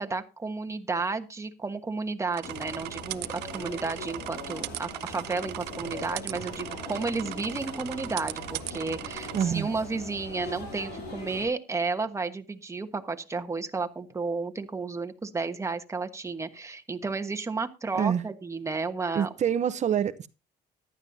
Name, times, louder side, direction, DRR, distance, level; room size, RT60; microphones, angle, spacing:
voice 1, 0.0-19.3, right 4 dB, 15° right, 1.3 m, -32 dB
sound 1, 2.3-9.5, right 17 dB, 80° right, 0.6 m, -39 dB
sound 2, 2.4-11.5, left 2 dB, 80° left, 6.2 m, -41 dB
voice 2, 9.3-9.7 18.0-18.2 19.1-20.3, right 8 dB, 45° right, 0.8 m, -26 dB
15.0 x 12.0 x 2.7 m
cardioid pair, 110°, 17 cm